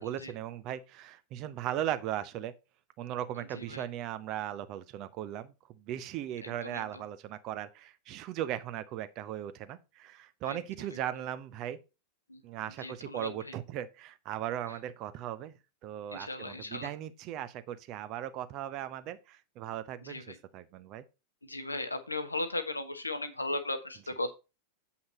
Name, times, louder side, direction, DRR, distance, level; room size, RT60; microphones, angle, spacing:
voice 1, 0.0-2.5 3.0-5.5 5.8-11.8 12.4-15.5 15.8-21.0, right 11 dB, 40° right, 0.8 m, -38 dB
voice 2, 3.5-3.8 6.4-7.0 10.4-10.6 10.9-11.0 12.3-12.4 12.8-13.6 14.7-14.8 16.1-16.9 20.0-20.4 21.4-24.3, left 2 dB, 80° left, 1.1 m, -37 dB
8.0 x 5.7 x 4.2 m
figure-of-eight pair, 90°, 0 cm